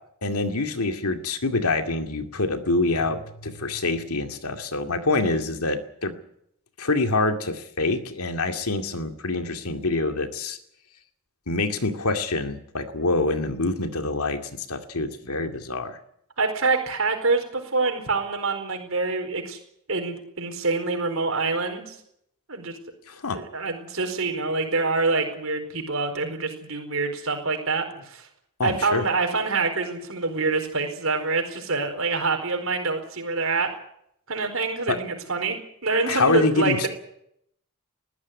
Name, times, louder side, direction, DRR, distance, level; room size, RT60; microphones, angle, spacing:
voice 1, 0.2-6.1 6.8-10.6 11.5-14.4 14.7-16.0 23.1-23.4 28.6-29.0 34.9-35.0 36.1-36.9, left 3 dB, 90° left, 7 dB, 2.4 m, -26 dB
voice 2, 16.4-19.6 19.9-22.0 22.5-22.7 23.3-28.3 28.6-33.7 34.3-36.9, right 3 dB, 65° right, 5 dB, 4.6 m, -26 dB
21.0 x 14.0 x 9.7 m, 0.73 s
head